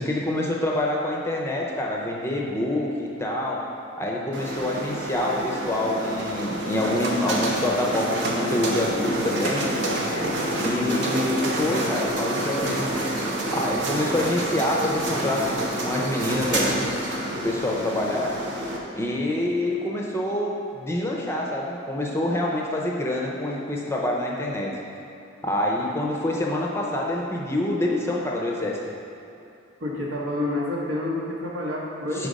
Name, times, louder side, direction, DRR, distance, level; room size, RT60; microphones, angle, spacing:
voice 1, 0.0-3.6 4.0-9.6 10.0-10.3 10.6-12.9 13.2-13.3 13.5-16.9 17.4-18.3 19.0-24.7 25.4-28.8 32.2-32.3, left 1 dB, 15° left, -2 dB, 0.5 m, -26 dB
sound 1, 4.3-18.8, right 1 dB, 60° right, 0.8 m, -28 dB
voice 2, 10.0-10.4 29.8-32.3, left 1 dB, 75° right, -4 dB, 1.1 m, -29 dB
4.9 x 4.6 x 5.2 m, 2.8 s
head